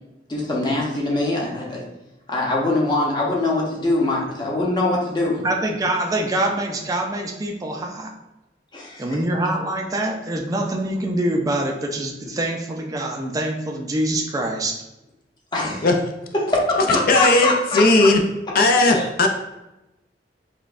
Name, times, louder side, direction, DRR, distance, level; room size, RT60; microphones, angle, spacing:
voice 1, 0.3-1.8 2.3-5.4 8.7-9.2 15.5-15.9 16.3-18.1 18.9-19.1, left 2 dB, 25° left, -3 dB, 0.8 m, -23 dB
voice 2, 5.4-8.1 9.0-14.8, right 1 dB, 20° right, 1 dB, 0.4 m, -25 dB
voice 3, 16.9-18.2 18.5-19.3, left 2 dB, 55° left, 4 dB, 0.4 m, -16 dB
5.1 x 2.2 x 2.5 m, 0.95 s
head